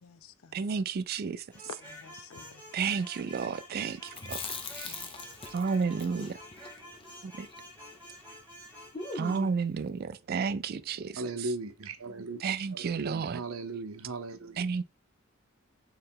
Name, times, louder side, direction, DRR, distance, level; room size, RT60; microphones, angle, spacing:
voice 1, 0.0-0.6 1.6-3.0 4.8-5.1, left 6 dB, 85° left, 0.5 m, -49 dB
voice 2, 0.5-1.4 2.7-4.4 4.7-5.0 5.5-6.4 7.2-7.5 9.1-11.2 12.4-13.4 14.6-14.8, right 5 dB, 45° right, 0.3 m, -31 dB
sound 1, 1.5-9.5, equal, 5° left, 1.8 m, -49 dB
Chewing mastication, 4.1-8.3 8.5-8.6 8.9-9.7, left 3 dB, 25° left, 0.7 m, -41 dB
voice 3, 11.1-12.4 12.7-14.6, right 3 dB, 90° right, 0.7 m, -37 dB
4.3 x 3.2 x 3.6 m
head